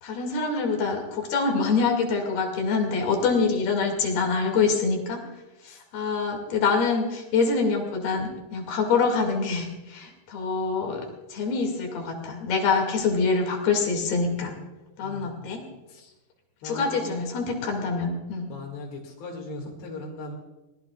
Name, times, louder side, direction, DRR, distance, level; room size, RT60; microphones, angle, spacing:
voice 1, 0.0-5.2 5.6-11.0 11.3-14.5 15.0-15.6 16.6-18.5, left 4 dB, 70° left, 2 dB, 4.2 m, -25 dB
voice 2, 15.0-15.6 15.9-16.1 16.6-17.5 18.5-20.4, left 2 dB, 90° left, -1 dB, 4.3 m, -39 dB
25.0 x 19.5 x 2.4 m, 1.1 s
omnidirectional pair, 4.7 m